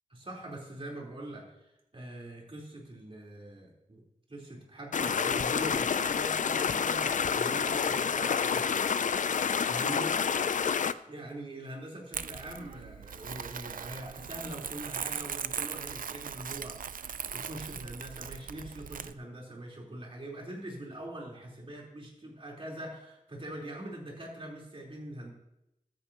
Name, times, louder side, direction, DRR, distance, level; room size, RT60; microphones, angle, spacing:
voice 1, 0.1-4.0 4.3-8.8 9.7-10.2 11.1-25.3, right 1 dB, 40° right, -3 dB, 4.0 m, -43 dB
sound 1, 4.9-10.9, left 6 dB, 65° left, 0.4 m, -28 dB
Crumpling crinkling, 12.1-19.1, right 7 dB, 75° right, 0.5 m, -39 dB
14.5 x 13.5 x 3.0 m, 0.85 s
wide cardioid pair, 95°, 14 cm